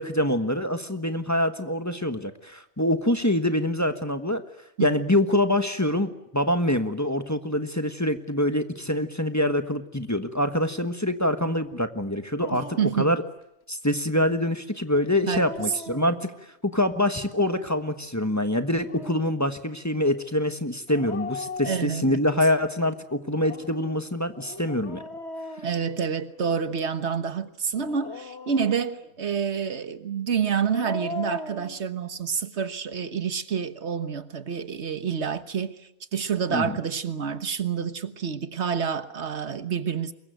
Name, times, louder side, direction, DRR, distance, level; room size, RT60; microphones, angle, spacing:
voice 1, 0.0-4.4 4.8-12.7 13.0-13.2 13.7-16.3 16.6-25.0 36.5-36.7, left 1 dB, 15° left, 1.3 m, -25 dB
Dog, 12.4-13.0 15.1-16.5 18.6-19.4 20.9-22.4 23.3-26.5 27.7-29.1 30.5-31.8, left 3 dB, 75° left, 2.0 m, -39 dB
voice 2, 12.8-13.1 15.3-15.5 21.6-22.2 25.6-35.8 36.1-40.1, right 7 dB, 80° right, 1.6 m, -28 dB
25.0 x 22.0 x 9.2 m
omnidirectional pair, 1.1 m